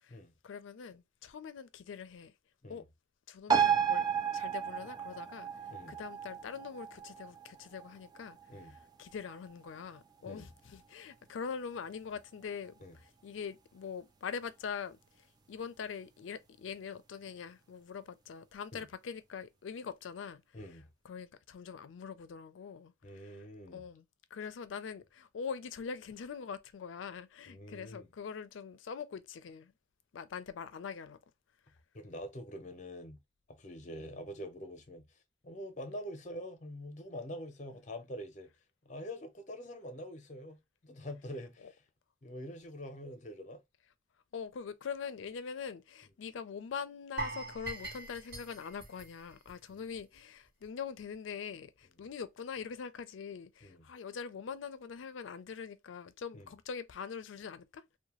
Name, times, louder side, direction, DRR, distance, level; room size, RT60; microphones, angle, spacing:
voice 1, 0.4-2.3 2.7-2.8 3.3-5.5 5.9-8.4 8.7-12.7 13.0-20.4 21.0-23.4 23.7-24.0 24.3-29.7 30.1-31.2 34.0-34.2 41.6-41.7 44.3-57.8, left 6 dB, 90° left, 0.4 m, -43 dB
sound 1, 3.5-10.5 10.8-10.9, right 8 dB, 20° right, 0.3 m, -33 dB
voice 2, 20.5-20.8 23.0-23.8 27.5-28.1 31.9-33.2 33.6-35.0 35.4-38.5 38.8-41.7 42.2-43.6 49.7-49.8 53.6-53.9 56.3-56.5, equal, 40° left, 0.7 m, -45 dB
sound 2, 47.2-50.2 50.4-50.6 51.1-51.2, right 2 dB, 60° right, 1.1 m, -42 dB
2.7 x 2.2 x 2.9 m
head